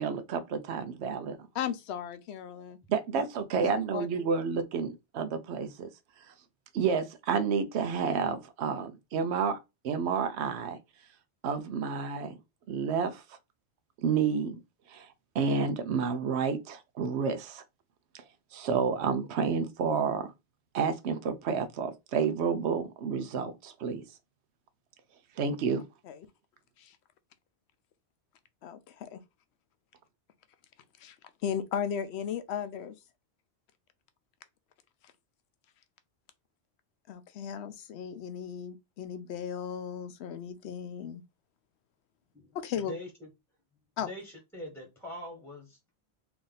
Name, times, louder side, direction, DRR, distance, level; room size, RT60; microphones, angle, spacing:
voice 1, 0.0-1.4 2.9-5.9 6.3-6.4 6.7-9.6 9.8-10.8 11.4-12.4 12.7-13.2 14.0-14.6 14.9-15.1 15.3-17.6 18.5-20.3 20.7-24.0 25.4-25.9, right 6 dB, 85° right, 0.9 m, -30 dB
voice 2, 1.5-2.8 3.6-4.1 26.0-26.3 26.8-27.0 28.6-29.2 31.0-31.2 31.4-32.9 37.1-41.2 42.5-42.9 44.0-44.1, left 8 dB, 80° left, 0.9 m, -36 dB
voice 3, 44.0-45.8, left 1 dB, ahead, 1.0 m, -42 dB
3.4 x 2.6 x 3.9 m
omnidirectional pair, 1.1 m